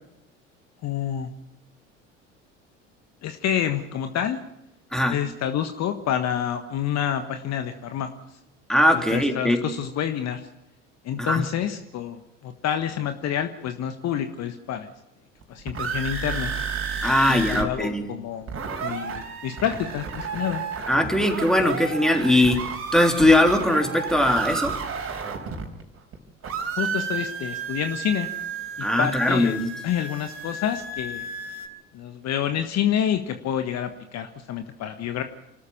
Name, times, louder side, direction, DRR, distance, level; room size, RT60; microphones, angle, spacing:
voice 1, 0.8-1.3 3.2-4.4 5.1-8.1 9.1-10.4 11.0-14.9 15.5-16.5 17.3-18.5 18.8-20.6 26.8-28.3 28.8-29.5 29.8-31.3 31.9-35.2, left 9 dB, 45° left, 8 dB, 1.5 m, -28 dB
voice 2, 8.7-9.6 11.2-11.5 17.0-18.1 20.9-24.8 28.8-29.7, left 1 dB, ahead, 4 dB, 3.5 m, -20 dB
howling cracklebox, 15.4-17.7 17.9-18.0 18.3-26.2 26.4-31.7, right 5 dB, 35° right, 4.2 m, -32 dB
27.5 x 13.5 x 7.2 m, 0.88 s
figure-of-eight pair, 65°, 37 cm